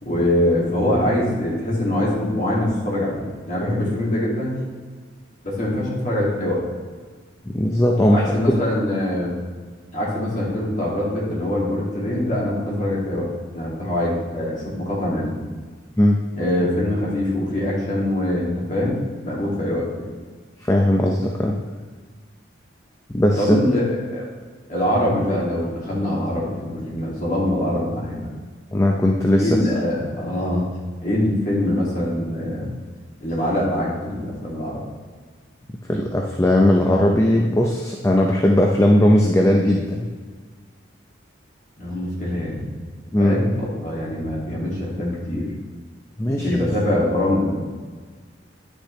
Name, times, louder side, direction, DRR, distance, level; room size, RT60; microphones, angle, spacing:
voice 1, 0.0-4.6 5.4-6.6 8.1-9.3 9.9-15.3 16.4-20.1 23.4-24.2 24.7-28.3 29.4-30.7 31.0-32.7 33.2-34.8 41.8-42.6 43.2-45.5 46.2-47.6, left 1 dB, 40° left, -5 dB, 2.3 m, -23 dB
voice 2, 7.5-8.6 16.0-16.2 20.7-21.6 23.1-23.6 28.7-29.5 35.9-40.1 43.1-43.4 46.2-46.7, left 1 dB, 15° left, 0 dB, 0.5 m, -18 dB
9.9 x 6.5 x 3.2 m, 1.5 s
head